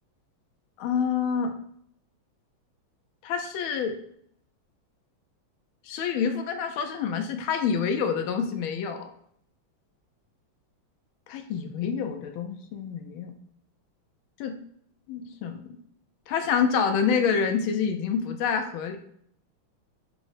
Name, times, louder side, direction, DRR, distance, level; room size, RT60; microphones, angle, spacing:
voice 1, 0.8-1.5 3.2-4.0 5.8-9.1 11.3-13.3 14.4-14.6 15.1-15.6 16.3-19.0, left 6 dB, 85° left, 6 dB, 1.4 m, -27 dB
5.7 x 2.0 x 3.9 m, 0.69 s
omnidirectional pair, 2.2 m